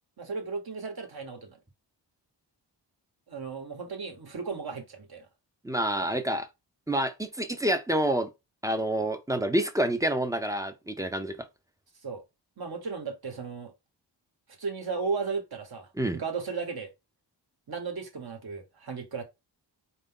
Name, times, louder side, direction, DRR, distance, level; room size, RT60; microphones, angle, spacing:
voice 1, 0.2-1.6 3.3-5.3 12.0-12.2 12.6-13.7 14.6-16.9 17.7-19.2, right 4 dB, 55° right, 1.1 m, -35 dB
voice 2, 5.6-6.5 6.9-8.3 8.6-11.4 16.0-16.2, right 1 dB, 10° right, 0.5 m, -28 dB
4.4 x 2.6 x 3.7 m
wide cardioid pair, 120°, 44 cm